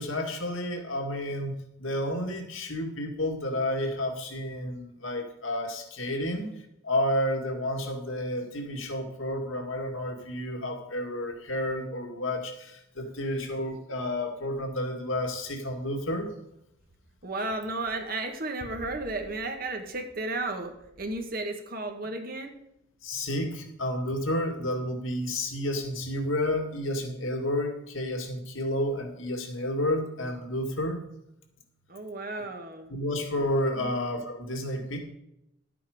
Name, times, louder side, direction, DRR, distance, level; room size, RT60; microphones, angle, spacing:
voice 1, 0.0-6.5 6.8-16.3 23.0-31.0 32.9-35.0, left 1 dB, 80° left, 4 dB, 2.1 m, -31 dB
voice 2, 17.2-22.6 31.9-32.9 33.7-33.9, right 2 dB, 45° right, 4 dB, 1.5 m, -34 dB
12.0 x 8.5 x 5.0 m, 0.81 s
head